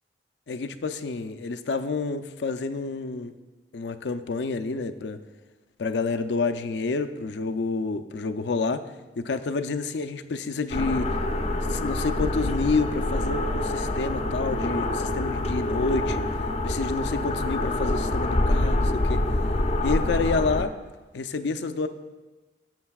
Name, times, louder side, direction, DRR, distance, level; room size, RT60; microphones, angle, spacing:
voice 1, 0.5-3.3 3.7-5.2 5.8-8.8 9.2-11.1 11.7-16.2 16.6-19.2 19.8-20.7 21.1-21.9, left 4 dB, 85° left, 9 dB, 0.5 m, -28 dB
sound 1, 10.7-20.6, left 1 dB, 35° left, 0.5 m, -26 dB
16.5 x 7.4 x 2.4 m, 1.2 s
head